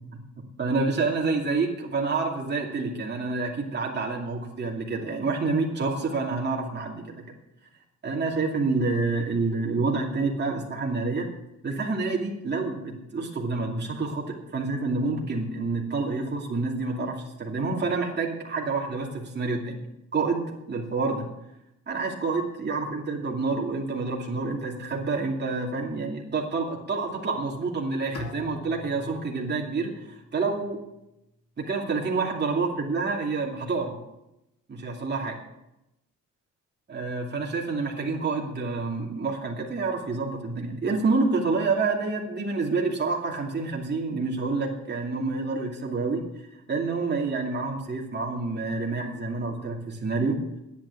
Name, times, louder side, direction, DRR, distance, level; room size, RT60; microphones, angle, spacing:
voice 1, 0.6-7.3 8.0-11.3 11.6-19.8 20.1-21.3 21.9-30.8 31.6-34.0 34.7-35.4 36.9-46.2 46.7-50.4, right 3 dB, 35° right, -1 dB, 2.6 m, -28 dB
Bowed string instrument, 28.1-31.2, left 3 dB, 50° left, 2.2 m, -43 dB
10.0 x 9.3 x 8.2 m, 0.91 s
cardioid pair, 90°, 30 cm